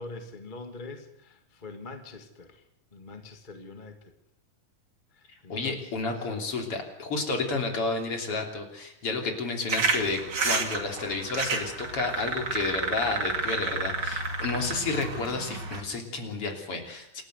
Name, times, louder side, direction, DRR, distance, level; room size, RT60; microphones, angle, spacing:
voice 1, 0.0-2.6 2.9-4.1 5.1-5.9 6.2-6.5, left 3 dB, 20° left, 6 dB, 1.3 m, -44 dB
voice 2, 5.5-10.2 10.4-17.2, left 3 dB, 45° left, 4 dB, 3.9 m, -31 dB
sound 1, 9.7-15.8, right 3 dB, 35° right, 2.8 m, -30 dB
28.0 x 13.0 x 8.0 m, 0.76 s
omnidirectional pair, 3.8 m